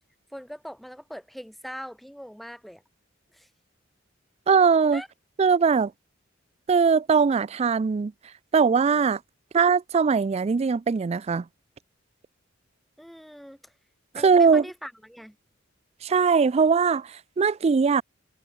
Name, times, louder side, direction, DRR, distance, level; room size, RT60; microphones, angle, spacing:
voice 1, 0.3-2.8 3.3-3.5 4.9-5.1 13.0-13.7 14.1-15.4, equal, ahead, 4.7 m, -41 dB
voice 2, 4.5-5.0 5.4-5.9 6.7-8.1 8.5-9.2 9.5-11.4 14.2-14.6 16.0-18.0, right 5 dB, 30° right, 0.3 m, -20 dB
head